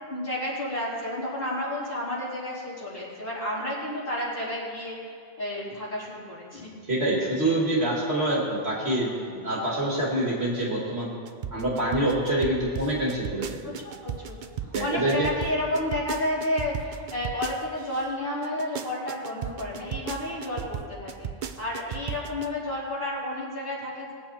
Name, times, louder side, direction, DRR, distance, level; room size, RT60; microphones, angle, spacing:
voice 1, 0.0-5.0 5.4-6.7 7.1-7.5 9.1-9.4 13.6-21.3 21.6-24.1, left 1 dB, 50° left, -9 dB, 4.3 m, -31 dB
voice 2, 6.9-9.1 9.4-11.1 11.5-13.7 14.7-15.3, right 1 dB, 70° right, -4 dB, 2.5 m, -26 dB
sound 1, 11.3-18.0 18.4-22.5, right 8 dB, 55° right, 0.7 m, -35 dB
21.5 x 8.1 x 4.3 m, 2.3 s
omnidirectional pair, 1.1 m